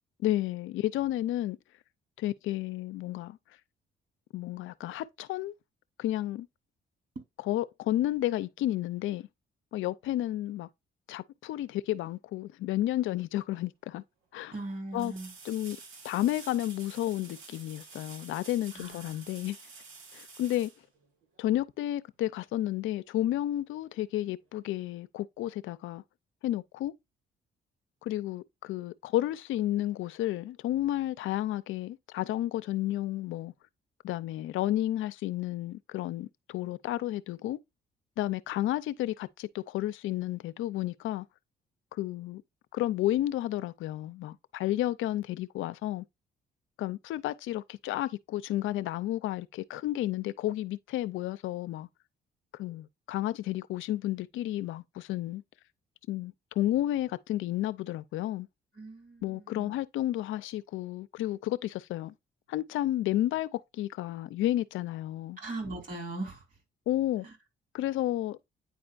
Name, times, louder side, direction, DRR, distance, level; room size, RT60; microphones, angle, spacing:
voice 1, 0.2-1.6 2.2-3.4 4.3-5.5 6.0-6.5 7.4-9.3 9.7-10.7 11.1-14.0 14.3-14.5 14.9-15.1 15.4-15.8 16.0-19.6 20.1-20.7 21.4-26.0 26.4-26.9 28.0-33.5 34.0-37.6 38.2-41.3 41.9-42.4 42.7-46.0 46.8-51.9 52.5-55.4 56.1-58.5 59.2-62.1 62.5-65.4 66.9-67.3 67.7-68.4, left 14 dB, 80° left, 0.5 m, -31 dB
sound 1, 13.6-13.7 14.9-21.6 24.4-24.5, right 4 dB, 90° right, 1.6 m, -49 dB
voice 2, 14.5-15.3 18.7-19.4 58.8-59.7 65.4-66.4 67.2-67.3, right 2 dB, 45° right, 3.2 m, -39 dB
9.4 x 4.3 x 2.4 m
cardioid pair, 90°, 20 cm